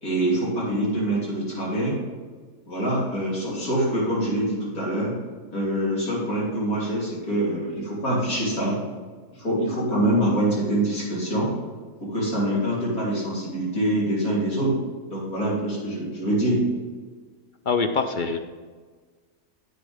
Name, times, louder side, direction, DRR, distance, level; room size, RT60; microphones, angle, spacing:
voice 1, 0.0-2.0 2.7-5.1 5.5-8.8 9.4-11.5 12.0-14.7 15.1-16.6, right 1 dB, 90° left, -6 dB, 3.7 m, -25 dB
voice 2, 17.7-18.4, left 4 dB, 60° left, 6 dB, 0.5 m, -24 dB
9.7 x 8.1 x 3.5 m, 1.4 s
omnidirectional pair, 1.5 m